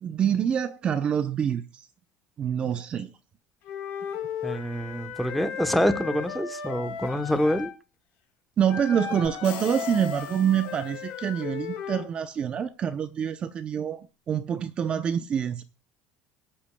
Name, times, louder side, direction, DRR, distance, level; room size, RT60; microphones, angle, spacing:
voice 1, 0.0-1.8 2.4-3.1 8.6-15.6, right 8 dB, 30° right, 0.6 m, -26 dB
Wind instrument woodwind instrument, 3.7-7.7 8.7-12.1, left 8 dB, 55° left, 3.5 m, -36 dB
voice 2, 4.4-7.7, equal, ahead, 0.9 m, -26 dB
sound 1, 9.2-11.3, left 9 dB, 75° left, 3.6 m, -43 dB
25.0 x 8.7 x 2.2 m
cardioid pair, 165°, 4 cm